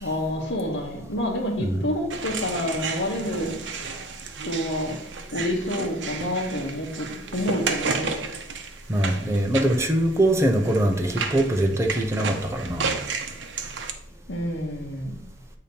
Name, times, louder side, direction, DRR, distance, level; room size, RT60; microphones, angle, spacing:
voice 1, 0.0-3.6 4.5-5.0 5.3-8.1 14.3-15.1, left 1 dB, 75° left, -3 dB, 1.0 m, -28 dB
sound 1, 2.1-13.9, right 4 dB, 75° right, 0.7 m, -33 dB
voice 2, 8.9-12.9, right 1 dB, 15° right, 3 dB, 0.6 m, -22 dB
7.9 x 2.9 x 5.2 m, 0.72 s
head